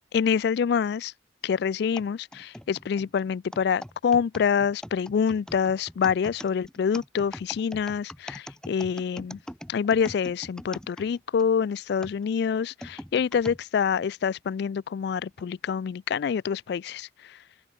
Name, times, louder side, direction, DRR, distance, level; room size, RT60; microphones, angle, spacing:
voice 1, 0.1-1.1 1.4-9.4 9.7-17.1, left 7 dB, 60° left, 0.3 m, -26 dB
sound 1, 2.0-11.5 12.0-13.6 14.2-14.3 15.2-15.4, equal, 5° left, 1.7 m, -42 dB
open air
head